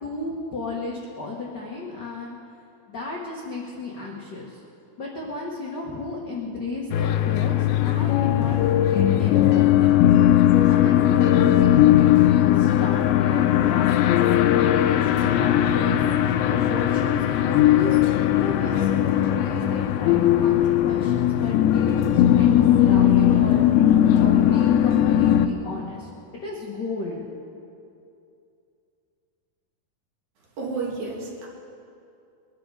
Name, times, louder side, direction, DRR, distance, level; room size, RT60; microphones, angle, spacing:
voice 1, 0.0-2.4 2.9-4.6 5.0-9.9 10.7-18.0 18.3-23.9 24.1-26.1 26.4-27.2, left 3 dB, 60° left, -3 dB, 1.1 m, -33 dB
sound 1, 6.9-25.5, left 11 dB, 90° left, 2.5 m, -19 dB
voice 2, 30.6-31.5, right 4 dB, 55° right, -4 dB, 3.4 m, -31 dB
22.0 x 11.0 x 4.9 m, 2.6 s
omnidirectional pair, 4.3 m